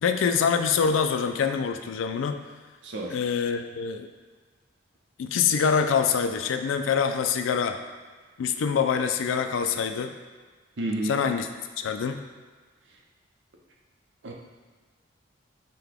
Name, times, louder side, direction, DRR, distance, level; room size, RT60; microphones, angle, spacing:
voice 1, 0.0-2.4 3.1-4.1 5.2-7.8 8.4-10.1 11.0-11.5 11.8-12.2, left 6 dB, 85° left, 7 dB, 0.3 m, -25 dB
voice 2, 2.8-3.2 10.8-11.2 14.2-14.3, right 1 dB, 70° right, 0 dB, 0.6 m, -30 dB
5.8 x 2.2 x 3.4 m, 1.4 s
head